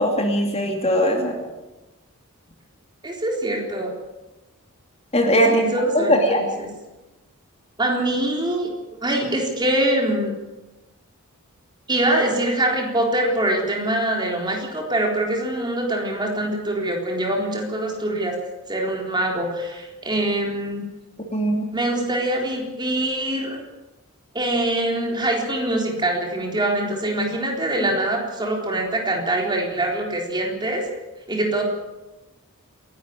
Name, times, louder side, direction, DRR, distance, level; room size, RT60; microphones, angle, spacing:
voice 1, 0.0-1.4 5.1-6.4 21.3-21.7, equal, 30° left, 2 dB, 2.7 m, -20 dB
voice 2, 3.0-3.9 5.5-6.7 7.8-8.7 9.0-10.3 11.9-18.4 18.7-20.8 21.7-23.6 24.3-30.8 31.3-31.6, right 1 dB, 20° right, 1 dB, 3.9 m, -24 dB
28.0 x 11.5 x 8.8 m, 1.1 s
head